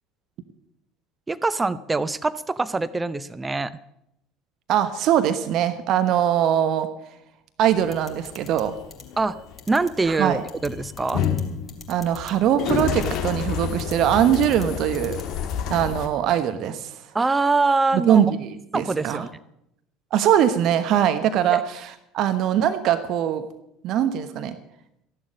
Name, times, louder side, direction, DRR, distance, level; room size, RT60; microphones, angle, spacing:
voice 1, 1.3-3.7 9.2-9.4 9.7-11.2 17.1-18.2 18.7-19.3 21.5-21.6, right 3 dB, 15° right, 15 dB, 0.6 m, -24 dB
voice 2, 4.7-6.9 7.6-8.7 10.2-10.4 11.9-15.2 15.7-16.9 17.9-19.2 20.1-21.6 22.1-23.4 23.8-24.5, right 10 dB, 50° right, 9 dB, 1.1 m, -21 dB
sound 1, 7.7-16.1, left 8 dB, 45° left, 2.1 m, -30 dB
sound 2, 7.9-8.6 8.9-9.0 9.6-9.9 10.5-10.7 11.0-11.4 11.7-12.3 12.7-13.1 13.8-13.9 14.3-14.6 14.9-15.2, left 4 dB, 20° left, 3.1 m, -43 dB
14.5 x 11.0 x 6.4 m, 0.80 s
figure-of-eight pair, 70°, 0 cm